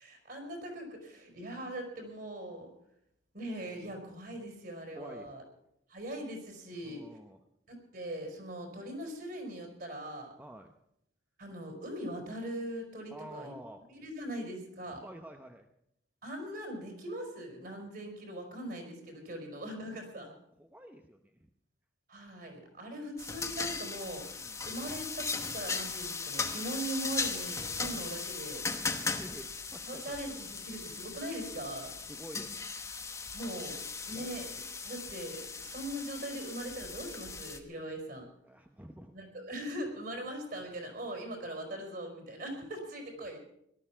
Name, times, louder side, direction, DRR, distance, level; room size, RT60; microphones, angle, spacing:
voice 1, 0.0-2.7 3.3-5.4 5.9-7.0 7.7-10.3 11.4-13.5 13.9-15.0 16.2-20.3 22.1-28.6 29.8-31.9 33.3-38.3 39.1-43.4, right 1 dB, 50° right, 3 dB, 4.6 m, -41 dB
voice 2, 4.9-5.3 6.8-7.4 10.4-10.7 13.1-13.8 14.8-15.7 20.6-21.5 24.4-24.6 28.9-30.2 31.9-32.6 38.4-39.1, right 1 dB, 10° right, 4 dB, 0.8 m, -49 dB
sound 1, 23.2-37.6, left 4 dB, 15° left, 1.0 m, -38 dB
18.0 x 12.5 x 5.7 m, 0.77 s
head